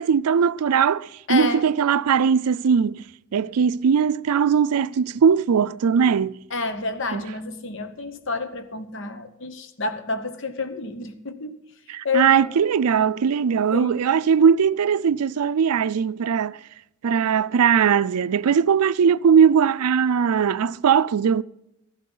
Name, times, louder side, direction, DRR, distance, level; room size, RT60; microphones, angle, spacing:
voice 1, 0.0-3.0 3.3-6.3 7.1-7.2 11.9-16.6 17.0-21.4, right 7 dB, 90° right, 0.4 m, -20 dB
voice 2, 1.3-1.7 6.5-11.6 12.0-12.7 13.7-14.0, left 4 dB, 55° left, 0.9 m, -29 dB
15.5 x 12.0 x 3.9 m
head